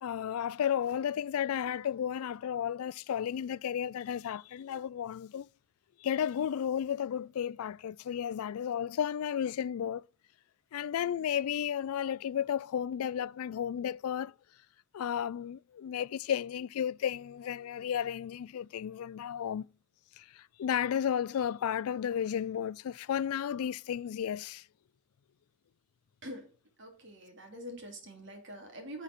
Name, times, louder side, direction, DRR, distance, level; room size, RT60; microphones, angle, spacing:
voice 1, 0.0-5.5 6.0-10.0 10.7-14.3 14.9-19.7 20.2-24.6, left 9 dB, 85° left, 0.3 m, -33 dB
voice 2, 26.8-29.0, equal, 55° right, 2.7 m, -45 dB
9.9 x 5.8 x 4.2 m
head